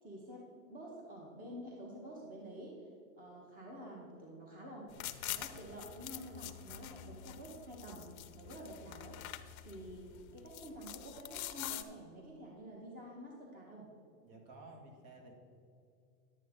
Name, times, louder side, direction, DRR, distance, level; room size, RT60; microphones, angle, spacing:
voice 1, 0.0-2.8 3.2-4.9 5.2-8.1 8.3-9.2 9.6-13.9, right 1 dB, 20° right, -1 dB, 1.4 m, -49 dB
sound 1, 4.9-11.8, left 12 dB, 70° left, 0.8 m, -46 dB
voice 2, 14.2-15.3, right 2 dB, 45° right, 2 dB, 2.0 m, -54 dB
10.5 x 9.1 x 3.8 m, 2.6 s
supercardioid pair, 135°, 44 cm